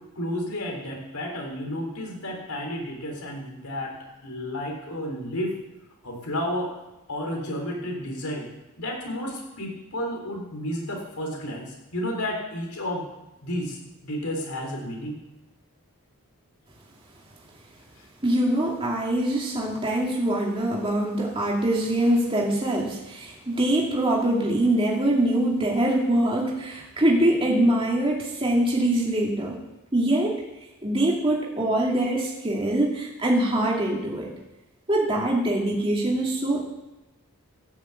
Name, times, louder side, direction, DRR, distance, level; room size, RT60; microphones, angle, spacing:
voice 1, 0.2-3.9 4.2-5.5 6.0-6.7 7.1-8.5 8.8-13.0 13.4-13.8 14.0-15.2, left 1 dB, 75° left, 0 dB, 3.8 m, -31 dB
voice 2, 18.2-29.6 29.9-30.4 30.8-34.3 34.9-36.7, right 1 dB, 25° right, -3 dB, 2.4 m, -23 dB
14.5 x 7.1 x 8.1 m, 0.99 s
head